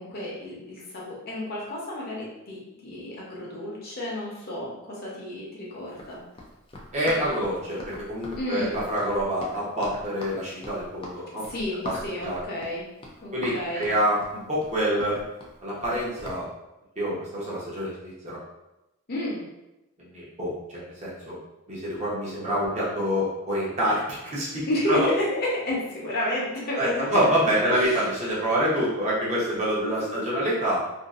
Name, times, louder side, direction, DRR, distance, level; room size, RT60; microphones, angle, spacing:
voice 1, 0.0-6.2 8.3-8.8 11.3-12.9 13.2-13.9 19.1-19.4 24.7-27.3 27.7-28.0 29.8-29.9 30.3-30.5, left 1 dB, 45° left, -5 dB, 0.7 m, -31 dB
Run, 5.9-16.4, left 1 dB, 25° left, 0.3 m, -41 dB
voice 2, 6.9-11.5 11.8-12.0 12.2-12.4 13.3-15.2 15.6-16.5 17.0-18.4 20.0-21.4 21.7-24.6 24.9-25.1 26.8-30.8, equal, 30° right, -7 dB, 0.8 m, -26 dB
2.6 x 2.4 x 2.4 m, 0.95 s
head